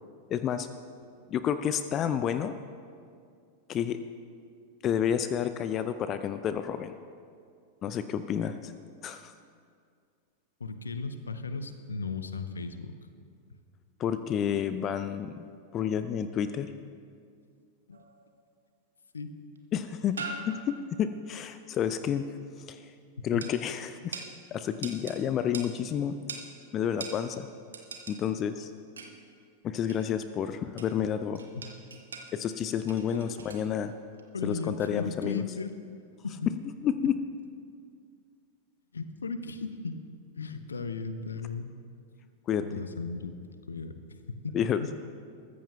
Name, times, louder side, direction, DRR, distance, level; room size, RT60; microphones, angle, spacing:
voice 1, 0.3-0.7 1.3-2.5 3.7-4.0 4.8-6.9 7.8-8.7 9.0-9.3 14.0-15.4 15.7-16.7 19.7-22.2 22.7-22.9 23.2-24.2 24.5-26.2 26.7-27.5 28.1-28.7 29.6-31.4 32.3-33.9 34.4-35.4 36.8-37.2 42.5-42.6 44.5-44.8, left 9 dB, 30° left, 11 dB, 0.5 m, -30 dB
voice 2, 10.6-12.9 17.9-18.0 19.1-19.3 23.2-23.4 31.5-31.6 33.2-33.4 34.3-35.7 36.2-36.4 38.9-40.0 40.4-41.7 42.6-43.3 43.7-44.0 44.3-44.9, left 4 dB, 75° left, 10 dB, 0.8 m, -36 dB
sound 1, 17.9-18.4 19.6-19.7 20.1-21.0 23.4-23.6 24.1-24.3 24.8-25.2 25.5-25.7 26.3-26.5 27.0-27.2 27.7-28.2 29.0-29.2 29.9-30.1 30.8-31.1 31.4-32.3 32.9-33.7 34.1-34.2, right 4 dB, 70° right, 1.2 m, -41 dB
22.0 x 14.5 x 2.3 m, 2.2 s
figure-of-eight pair, 90°, 0 cm